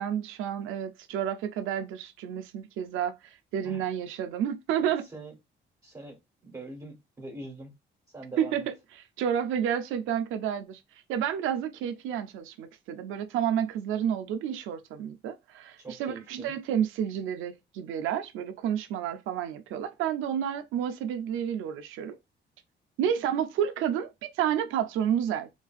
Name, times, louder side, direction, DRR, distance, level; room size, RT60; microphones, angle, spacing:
voice 1, 0.0-5.1 8.4-8.7 9.2-10.8 11.1-22.2 23.0-25.5, right 9 dB, 90° right, 0.5 m, -30 dB
voice 2, 4.8-5.3 5.8-6.2 6.4-7.7 8.1-8.7 15.8-16.5, right 2 dB, 15° right, 1.2 m, -43 dB
3.8 x 2.5 x 2.4 m
cardioid pair, 90°, 20 cm